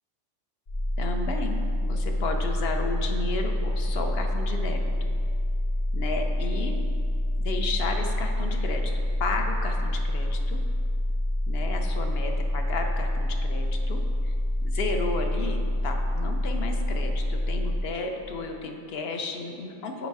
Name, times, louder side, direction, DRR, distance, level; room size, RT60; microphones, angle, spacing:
sound 1, 0.7-17.8, left 1 dB, 90° left, 1.8 m, -27 dB
voice 1, 1.0-5.1 5.9-6.8 7.4-8.9 9.2-10.6 11.5-14.3 14.6-20.1, left 3 dB, 60° left, 4 dB, 0.9 m, -33 dB
7.2 x 5.3 x 4.7 m, 2.4 s
omnidirectional pair, 1.2 m